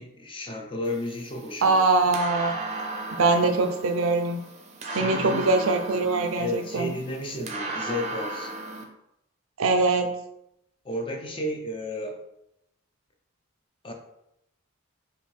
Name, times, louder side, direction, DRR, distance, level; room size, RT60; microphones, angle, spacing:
voice 1, 0.0-1.9 4.9-5.5 6.4-8.5 10.8-12.2 13.8-13.9, left 1 dB, 25° left, 3 dB, 0.5 m, -33 dB
sound 1, 0.8-8.8, right 2 dB, 35° right, 0.5 m, -36 dB
voice 2, 1.6-2.5 3.2-4.4 4.9-6.9 9.6-10.1, right 3 dB, 90° right, 6 dB, 0.6 m, -22 dB
5.2 x 2.6 x 3.3 m, 0.81 s
head